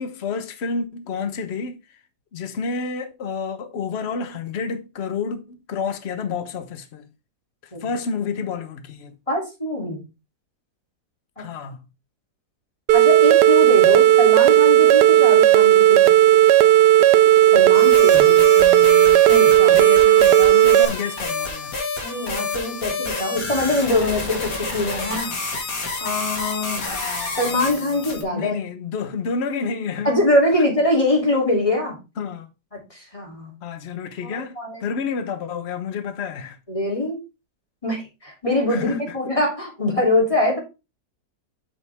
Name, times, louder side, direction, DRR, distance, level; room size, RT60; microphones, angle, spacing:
voice 1, 0.0-2.0 2.3-7.1 7.6-9.2 11.4-11.8 18.6-19.3 19.7-21.8 26.9-28.0 28.3-30.1 30.6-30.7 32.2-32.5 33.6-36.6 38.7-39.2, left 5 dB, 45° left, 1.1 m, -30 dB
voice 2, 9.3-10.0 11.4-11.5 12.9-16.1 17.5-18.4 19.3-19.8 22.0-25.6 26.0-26.8 27.4-28.5 30.0-32.0 32.9-33.5 34.2-34.9 36.7-37.2 37.8-40.6, left 2 dB, 20° left, 3.1 m, -23 dB
sound 1, 12.9-20.9, right 13 dB, 80° right, 1.2 m, -13 dB
sound 2, 17.7-28.2, left 3 dB, 75° left, 2.6 m, -29 dB
8.1 x 6.0 x 3.4 m
omnidirectional pair, 1.8 m